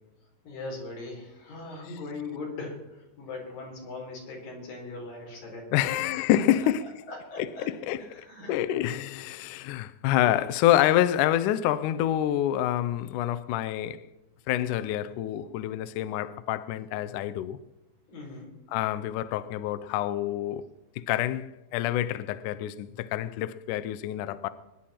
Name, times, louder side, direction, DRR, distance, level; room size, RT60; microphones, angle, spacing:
voice 1, 0.4-6.0 7.1-7.7 8.0-8.8 18.1-18.5, left 3 dB, 65° left, 5.9 m, -40 dB
voice 2, 5.7-6.9 7.4-14.0 14.5-17.6 18.7-20.6 21.0-24.5, left 12 dB, 80° left, 1.8 m, -27 dB
23.0 x 10.5 x 4.3 m
omnidirectional pair, 4.4 m